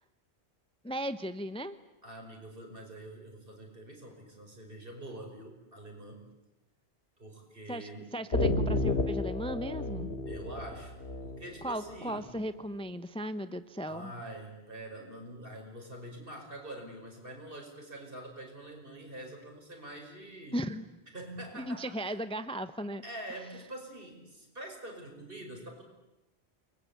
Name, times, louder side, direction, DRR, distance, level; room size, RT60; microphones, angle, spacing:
voice 1, 0.8-1.8 7.7-10.1 11.6-14.1 20.5-20.9 21.5-23.0, equal, 5° left, 12 dB, 0.8 m, -36 dB
voice 2, 2.0-6.2 7.2-8.0 10.3-11.0 11.2-12.3 13.8-20.6 21.1-22.3 23.0-25.8, right 1 dB, 55° right, 2 dB, 5.9 m, -45 dB
sound 1, 8.3-11.9, left 2 dB, 75° left, 2.4 m, -31 dB
29.0 x 22.0 x 8.5 m, 0.97 s
omnidirectional pair, 1.1 m